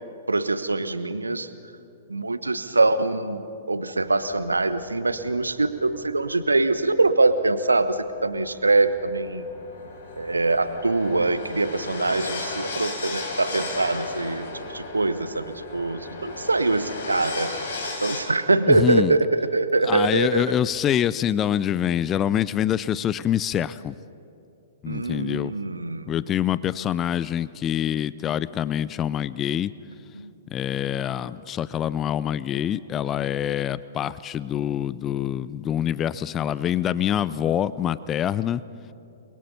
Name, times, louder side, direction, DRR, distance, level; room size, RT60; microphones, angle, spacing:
voice 1, 0.3-1.5 2.1-3.4 3.7-9.4 10.2-17.7 18.0-20.5 24.9-26.1 30.1-30.3, right 3 dB, 80° right, 12 dB, 1.1 m, -23 dB
sound 1, 4.1-18.2, left 3 dB, 60° left, 4.6 m, -36 dB
voice 2, 18.7-19.1 19.8-23.9 24.8-25.5 26.1-29.7 30.5-38.6, left 10 dB, 20° left, 18 dB, 0.4 m, -25 dB
29.0 x 22.0 x 5.5 m, 2.7 s
figure-of-eight pair, 110°, 0 cm